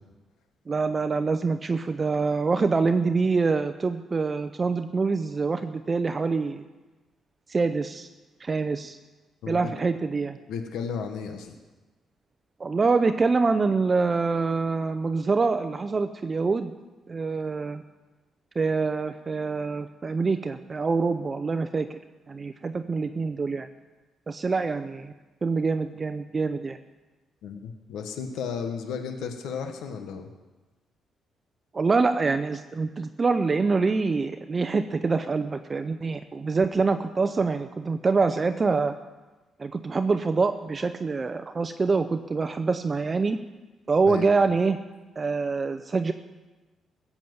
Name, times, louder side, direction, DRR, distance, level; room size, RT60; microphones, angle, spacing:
voice 1, 0.7-6.7 7.5-8.1 8.4-9.0 9.5-10.4 12.6-16.7 17.1-17.8 18.6-22.0 22.3-23.7 24.3-25.1 25.4-26.8 31.7-38.9 39.6-43.4 43.9-44.8 45.2-46.1, right 4 dB, 30° right, 8 dB, 0.6 m, -25 dB
voice 2, 10.5-11.5 27.4-30.3 44.1-44.3, left 6 dB, 85° left, 5 dB, 1.3 m, -34 dB
15.5 x 7.2 x 8.0 m, 1.2 s
cardioid pair, 90°, 0 cm